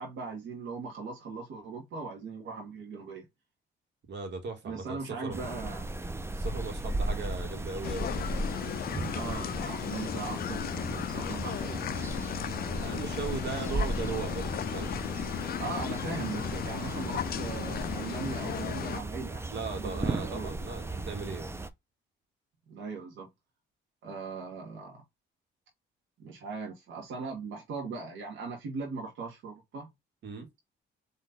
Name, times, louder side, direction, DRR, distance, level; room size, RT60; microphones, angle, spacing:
voice 1, 0.0-3.2 4.6-5.9 9.1-11.9 15.6-20.6 22.7-23.3 24.0-25.0 26.2-29.9, right 4 dB, 80° right, 1.7 m, -39 dB
voice 2, 4.1-5.4 6.4-8.3 12.6-15.0 19.5-21.5 30.2-30.5, right 4 dB, 60° right, 1.8 m, -38 dB
sound 1, 5.3-21.7, right 2 dB, 10° right, 0.6 m, -36 dB
sound 2, 7.8-19.0, left 11 dB, 50° left, 0.4 m, -35 dB
4.2 x 3.1 x 4.0 m
cardioid pair, 90°, 20 cm